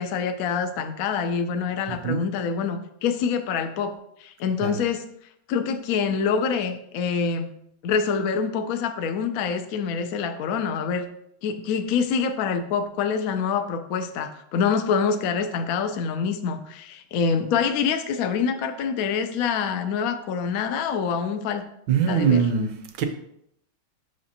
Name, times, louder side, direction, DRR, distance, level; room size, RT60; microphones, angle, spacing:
voice 1, 0.0-3.9 4.2-5.0 5.5-7.5 7.8-11.1 11.4-21.6 22.1-22.4, left 6 dB, 75° left, 8 dB, 0.8 m, -26 dB
voice 2, 21.9-22.7 23.0-23.1, right 7 dB, 70° right, 7 dB, 1.2 m, -21 dB
6.4 x 5.9 x 2.8 m, 0.73 s
omnidirectional pair, 2.2 m